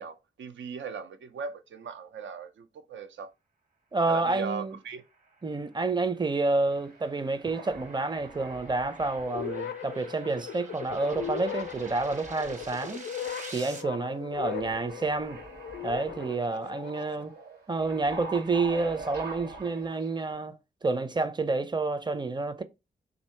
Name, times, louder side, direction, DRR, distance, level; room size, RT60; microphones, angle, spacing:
voice 1, 0.0-3.3 4.1-5.0, right 5 dB, 80° right, 0.6 m, -38 dB
voice 2, 3.9-4.7 5.4-13.1 13.5-15.4 15.8-17.3 17.7-22.6, right 3 dB, 25° right, 0.6 m, -29 dB
sound 1, 4.9-13.8, right 3 dB, 40° right, 1.0 m, -49 dB
sound 2, 6.7-7.1 7.4-10.5 10.9-13.1 13.4-13.5 14.3-20.3, right 3 dB, 60° right, 1.4 m, -44 dB
sound 3, 9.3-17.2, left 9 dB, 70° left, 0.4 m, -38 dB
2.7 x 2.7 x 4.4 m
cardioid pair, 55°, 19 cm